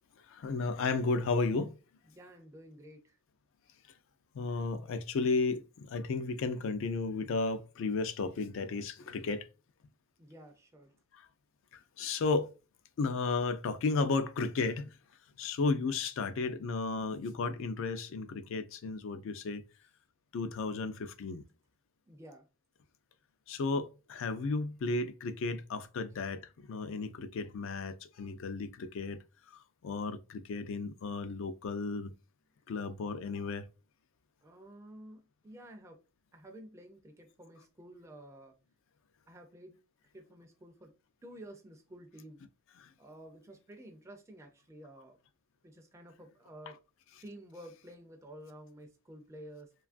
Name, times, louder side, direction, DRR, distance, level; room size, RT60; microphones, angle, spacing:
voice 1, 0.3-1.8 4.3-9.5 11.1-11.3 11.7-12.5 13.0-14.9 15.4-19.6 20.3-21.4 23.5-29.2 29.5-32.1 32.7-33.6 42.8-42.9, left 3 dB, 65° left, 0.4 m, -33 dB
voice 2, 2.1-3.2 10.2-10.9 22.1-22.5 34.4-36.0 36.3-38.5 39.3-39.8 40.1-40.9 41.2-42.4 43.0-45.2 45.6-46.8 47.2-49.7, right 1 dB, 15° right, 0.3 m, -51 dB
2.9 x 2.3 x 2.4 m
head